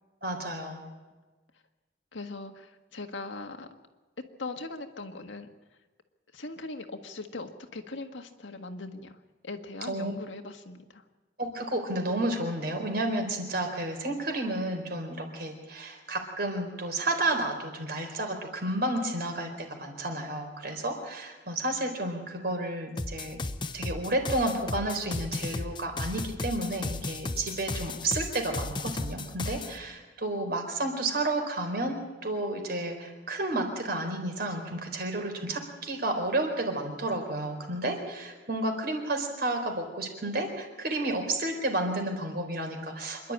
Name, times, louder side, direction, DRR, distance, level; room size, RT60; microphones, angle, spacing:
voice 1, 0.2-0.9 9.8-10.1 11.4-23.4 23.7-32.0 32.2-43.3, right 1 dB, 55° right, 4 dB, 4.2 m, -31 dB
voice 2, 2.1-3.7 4.4-5.5 6.3-9.2 9.4-11.0, left 3 dB, 90° left, 5 dB, 1.7 m, -40 dB
sound 1, 23.0-29.7, left 2 dB, 25° left, 0.8 m, -35 dB
26.5 x 11.5 x 8.8 m, 1.2 s
head